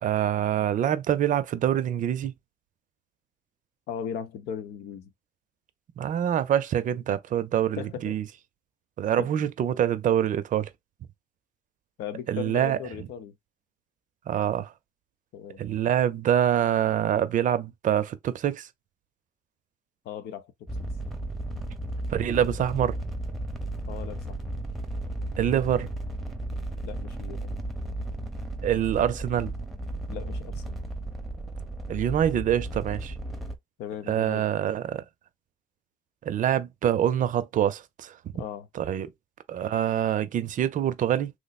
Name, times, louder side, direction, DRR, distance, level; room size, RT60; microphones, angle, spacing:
voice 1, 0.0-2.3 6.0-8.2 9.0-10.7 12.3-12.8 14.3-14.7 15.6-18.7 22.1-23.0 25.4-25.9 28.6-29.5 31.9-33.1 34.1-35.0 36.2-38.2 38.7-39.1 39.5-41.3, right 10 dB, 50° right, 0.5 m, -25 dB
voice 2, 3.9-5.1 7.8-8.2 9.2-9.3 12.0-13.3 15.3-15.6 20.0-20.5 23.9-24.5 26.8-27.5 30.1-30.8 33.8-34.4 38.3-38.7, left 8 dB, 75° left, 0.7 m, -37 dB
sound 1, 20.7-33.5, right 1 dB, ahead, 0.7 m, -34 dB
3.1 x 2.0 x 4.1 m
cardioid pair, 110°, 17 cm